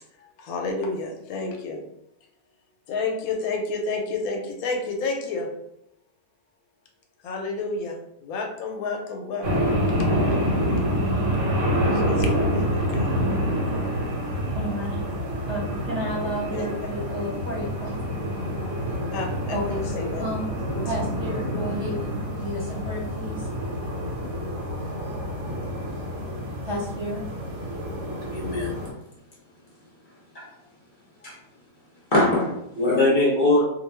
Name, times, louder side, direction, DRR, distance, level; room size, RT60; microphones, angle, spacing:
voice 1, 0.2-1.8 2.9-5.5 7.2-9.8 11.0-13.1 16.5-16.7 19.1-20.4 20.7-20.9 31.2-31.3, left 3 dB, 90° left, 2 dB, 1.1 m, -31 dB
sound 1, 9.4-28.9, equal, 65° right, 1.1 m, -27 dB
voice 2, 14.5-15.1 15.5-18.2 19.5-19.9 20.2-20.5 20.8-23.5 26.6-27.2, equal, 20° right, -8 dB, 0.9 m, -32 dB
voice 3, 28.3-28.8 30.3-30.6 31.2-31.4 32.1-33.6, left 2 dB, 45° left, -4 dB, 0.7 m, -21 dB
2.4 x 2.3 x 3.2 m, 0.82 s
omnidirectional pair, 1.5 m